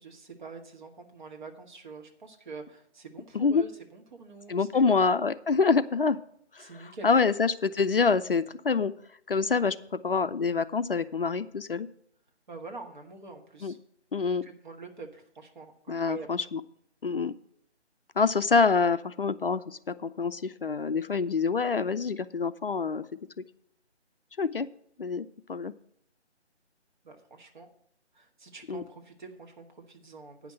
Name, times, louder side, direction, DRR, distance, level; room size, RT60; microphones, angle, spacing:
voice 1, 0.0-5.0 6.6-7.1 12.5-13.8 14.4-16.3 27.0-27.7 28.1-30.5, right 4 dB, 45° right, 3 dB, 1.7 m, -45 dB
voice 2, 4.5-6.2 6.5-6.7 7.0-8.9 9.3-9.8 10.0-11.9 13.6-13.7 14.1-14.4 15.9-16.6 17.0-17.3 18.2-23.0 23.4-23.5 24.4-24.7 25.0-25.7 28.7-28.8, left 5 dB, 55° left, 12 dB, 0.5 m, -26 dB
9.5 x 5.9 x 7.5 m, 0.68 s
figure-of-eight pair, 160°, 35 cm